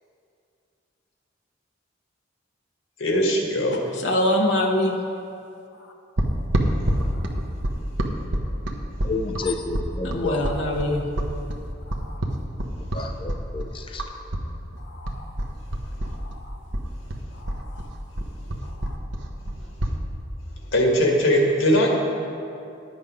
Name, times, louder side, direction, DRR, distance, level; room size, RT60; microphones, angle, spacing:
voice 1, 3.0-3.8 20.7-22.0, equal, 90° left, 0 dB, 1.8 m, -20 dB
voice 2, 3.9-5.0 7.0-7.2 10.0-11.1 11.9-12.2 14.8-15.3 16.0-16.6 17.4-17.9 18.8-19.0, left 1 dB, 70° left, 1 dB, 0.9 m, -26 dB
sound 1, 6.2-14.5 14.7-16.4 16.7-20.0, right 1 dB, 75° right, 1.0 m, -27 dB
voice 3, 9.0-10.4 12.9-14.0, left 3 dB, 25° left, 4 dB, 0.5 m, -30 dB
10.5 x 8.0 x 5.3 m, 2.6 s
head